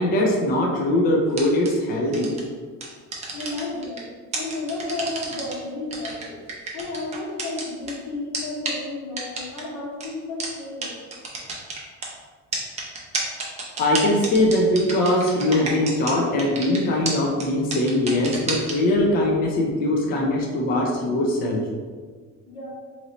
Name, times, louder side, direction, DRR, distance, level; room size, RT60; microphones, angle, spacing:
voice 1, 0.0-2.3 13.8-21.6, left 1 dB, 30° left, -1 dB, 0.4 m, -21 dB
sound 1, 1.3-1.7 2.1-2.4 2.8-4.0 4.3-5.5 5.9-7.9 8.3-8.4 8.6-8.7 9.2-9.6 10.0-10.1 10.4-10.5 10.8-10.9 11.1-12.1 12.5-16.1 16.4-16.8 17.0-17.1 17.4-17.5 17.7-18.7, right 4 dB, 25° right, 0.6 m, -29 dB
voice 2, 3.3-4.0 4.3-6.4 6.7-10.9 22.5-22.7, left 2 dB, 90° left, -3 dB, 1.1 m, -32 dB
3.0 x 2.6 x 4.0 m, 1.5 s
cardioid pair, 170°, 29 cm